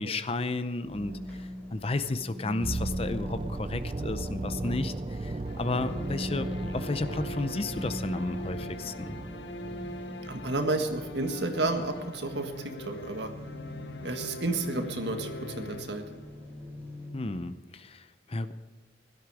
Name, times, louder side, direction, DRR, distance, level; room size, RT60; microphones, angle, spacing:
voice 1, 0.0-9.2 17.1-18.5, left 2 dB, 30° left, 11 dB, 0.6 m, -33 dB
sound 1, 0.8-17.1, left 1 dB, 10° left, 5.2 m, -41 dB
sound 2, 2.6-12.6 12.9-13.1, right 2 dB, 30° right, 0.4 m, -38 dB
sound 3, 5.5-16.6, left 1 dB, 60° left, 0.9 m, -43 dB
voice 2, 10.3-13.3 14.0-16.0, right 2 dB, 65° right, 6 dB, 1.7 m, -31 dB
16.5 x 12.5 x 4.9 m, 1.4 s
head